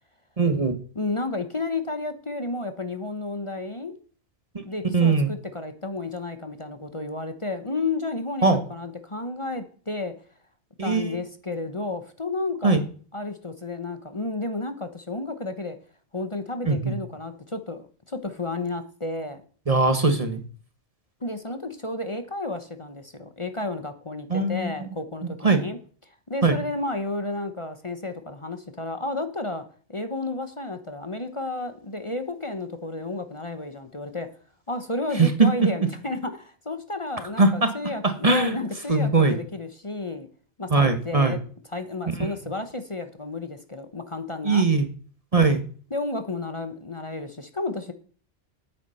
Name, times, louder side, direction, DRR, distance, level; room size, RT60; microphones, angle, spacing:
voice 1, 0.4-0.7 4.9-5.3 8.4-8.6 10.8-11.2 12.6-12.8 16.6-16.9 19.7-20.4 24.3-24.7 25.4-25.6 26.4-26.5 35.2-35.7 37.4-37.7 38.0-38.6 38.9-39.4 40.7-41.4 42.2-42.3 44.4-44.9 45.3-45.6, right 3 dB, 35° right, 9 dB, 1.3 m, -20 dB
voice 2, 0.9-3.9 4.6-10.1 10.8-12.8 13.1-15.8 16.1-19.4 21.2-25.8 26.1-29.6 29.9-34.3 34.7-40.3 40.6-41.4 41.7-44.7 45.9-47.9, left 2 dB, 30° left, 8 dB, 1.1 m, -32 dB
9.3 x 9.1 x 5.6 m, 0.42 s
omnidirectional pair, 1.1 m